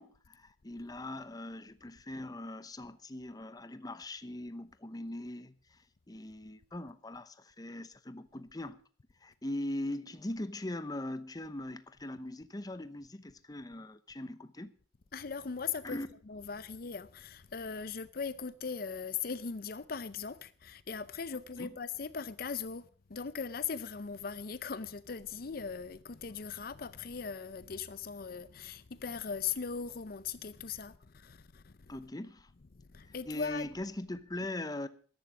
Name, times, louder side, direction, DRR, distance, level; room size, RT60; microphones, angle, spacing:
voice 1, 0.0-8.8 9.2-14.7 15.8-16.1 21.6-21.8 31.9-32.5 33.0-34.9, left 1 dB, 20° left, 0.9 m, -41 dB
voice 2, 15.1-31.9 32.9-33.7, left 6 dB, 55° left, 0.6 m, -39 dB
14.0 x 11.5 x 6.1 m
head